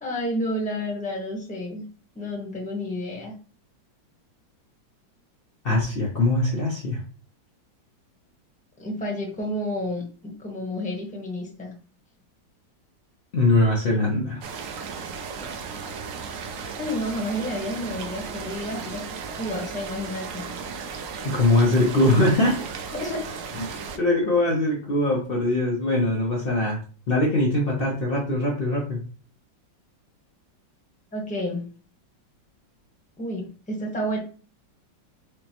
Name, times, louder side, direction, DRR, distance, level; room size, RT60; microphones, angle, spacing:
voice 1, 0.0-1.8 2.1-3.3 8.8-11.7 16.8-19.0 19.4-20.4 22.9-23.2 31.1-31.7 33.2-34.2, equal, 5° left, -2 dB, 0.6 m, -30 dB
voice 2, 5.6-7.0 13.3-14.4 21.2-22.6 23.6-23.7 23.9-26.8 27.1-29.0, left 2 dB, 70° left, -3 dB, 0.5 m, -22 dB
sound 1, 14.4-24.0, right 5 dB, 80° right, 0.7 m, -35 dB
4.8 x 2.1 x 2.9 m, 0.39 s
omnidirectional pair, 2.0 m